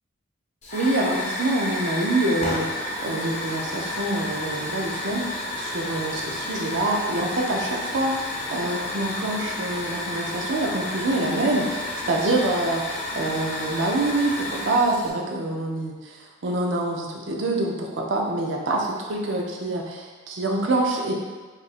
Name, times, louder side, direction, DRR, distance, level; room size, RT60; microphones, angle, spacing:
Hiss / Fire, 0.6-15.1, left 1 dB, 35° left, 0.6 m, -31 dB
voice 1, 0.7-5.3 5.6-16.2 16.4-21.1, right 2 dB, 60° right, 0 dB, 0.5 m, -26 dB
2.7 x 2.5 x 4.1 m, 1.4 s
head